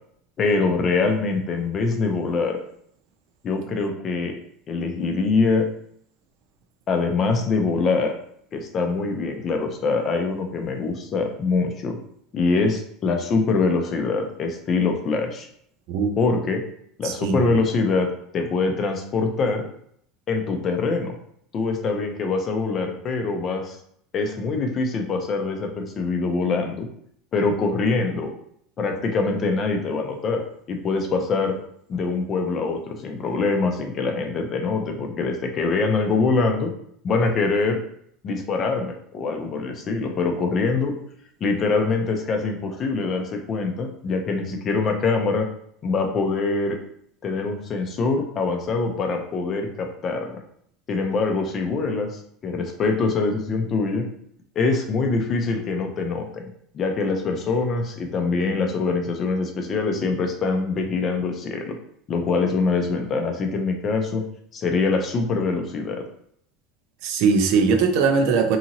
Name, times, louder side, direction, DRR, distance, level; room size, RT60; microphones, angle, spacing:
voice 1, 0.4-2.6 3.4-4.3 4.7-5.7 6.9-8.1 8.5-12.0 12.3-15.5 16.2-16.6 17.0-18.1 18.3-19.7 20.3-21.2 21.5-23.8 24.1-26.9 27.3-28.3 28.8-31.6 31.9-36.7 37.0-37.8 38.2-40.9 41.4-45.5 45.8-46.8 47.2-50.4 50.9-52.1 52.4-54.0 54.6-56.4 56.7-61.8 62.1-64.2 64.5-66.0, left 4 dB, 30° left, 4 dB, 0.5 m, -24 dB
voice 2, 17.0-17.4 67.0-68.6, right 5 dB, 60° right, 6 dB, 0.4 m, -20 dB
2.8 x 2.6 x 2.8 m, 0.67 s
supercardioid pair, 150°, 0 cm